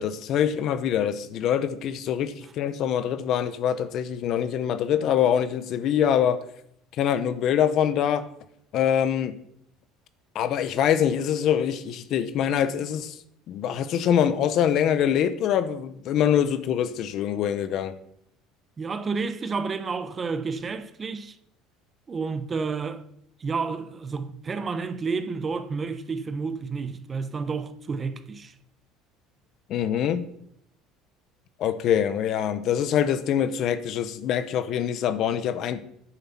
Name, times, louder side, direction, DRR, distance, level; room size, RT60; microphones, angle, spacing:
voice 1, 0.0-6.4 7.0-8.3 8.7-9.3 10.3-13.2 13.5-17.9 29.7-30.3 31.6-35.8, left 9 dB, 50° left, 0.9 m, -24 dB
voice 2, 18.8-21.4 22.1-23.0 23.4-28.5, right 4 dB, 25° right, 0.8 m, -30 dB
10.0 x 7.7 x 5.9 m
cardioid pair, 130°, 0 cm